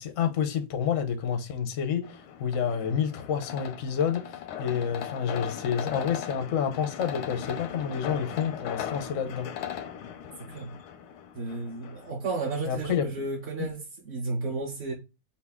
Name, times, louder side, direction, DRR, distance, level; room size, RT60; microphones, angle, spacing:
voice 1, 0.0-9.5 12.7-13.1, left 7 dB, 65° left, 0.8 m, -29 dB
sound 1, 2.0-12.1, left 9 dB, 85° left, 1.5 m, -38 dB
voice 2, 11.3-14.9, right 3 dB, 50° right, 0.8 m, -33 dB
5.7 x 2.2 x 3.5 m
omnidirectional pair, 2.3 m